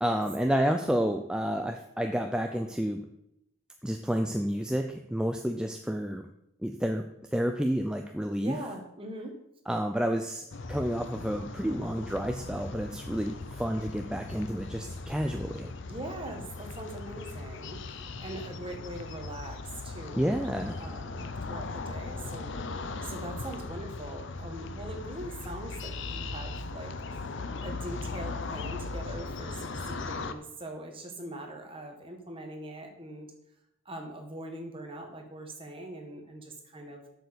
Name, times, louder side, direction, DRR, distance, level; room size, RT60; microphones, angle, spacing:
voice 1, 0.0-3.0 3.8-6.2 6.6-7.0 7.3-8.6 9.7-15.7 20.2-20.8, equal, 5° right, 4 dB, 0.4 m, -30 dB
voice 2, 8.4-9.3 15.9-20.3 20.8-22.6 23.0-26.9 27.6-33.3 33.8-37.0, right 1 dB, 25° right, 3 dB, 1.6 m, -42 dB
sound 1, 10.5-30.3, left 3 dB, 60° left, 0.7 m, -38 dB
7.8 x 7.0 x 6.8 m, 0.81 s
head